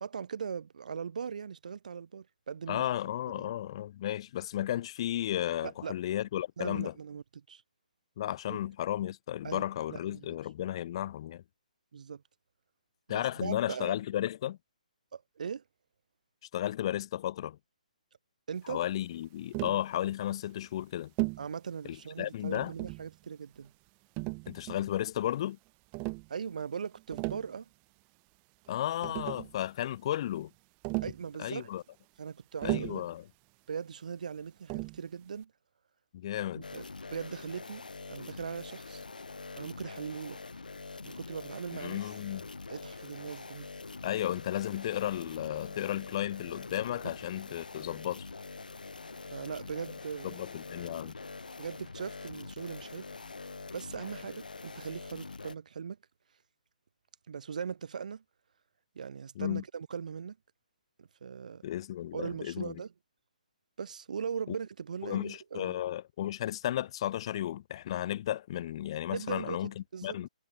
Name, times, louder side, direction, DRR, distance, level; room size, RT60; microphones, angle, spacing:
voice 1, 0.0-2.9 3.4-3.5 5.6-5.9 6.6-7.6 8.5-8.6 9.4-10.4 11.9-12.2 13.1-13.9 15.1-15.6 18.5-18.8 21.4-23.7 26.3-27.7 31.0-31.7 32.2-33.0 33.7-35.5 36.5-36.8 37.1-39.0 39.5-40.4 41.0-42.0 42.7-43.7 49.3-50.4 51.6-53.1 53.7-56.0 57.3-58.2 58.9-60.4 61.0-61.7 62.1-62.9 63.8-65.8 69.1-70.2, right 6 dB, 65° right, 1.4 m, -40 dB
voice 2, 2.7-6.9 8.2-11.4 13.1-14.6 16.5-17.6 18.7-21.1 21.9-22.7 24.5-25.6 28.7-30.5 31.4-31.8 32.6-33.2 36.1-36.7 41.8-42.5 44.0-48.3 50.2-51.2 59.4-59.6 61.6-62.7 64.5-64.6 65.0-70.3, left 12 dB, 40° left, 0.3 m, -34 dB
Tap, 19.5-19.9 21.2-21.5 22.5-23.1 24.2-24.9 25.9-26.3 27.0-27.5 28.7-28.8 29.0-29.5 30.8-31.2 32.6-33.1 34.7-35.0, right 39 dB, 25° right, 1.2 m, -35 dB
sound 1, 36.6-55.6, left 3 dB, 90° left, 1.2 m, -45 dB
hypercardioid pair, 145°, 4 cm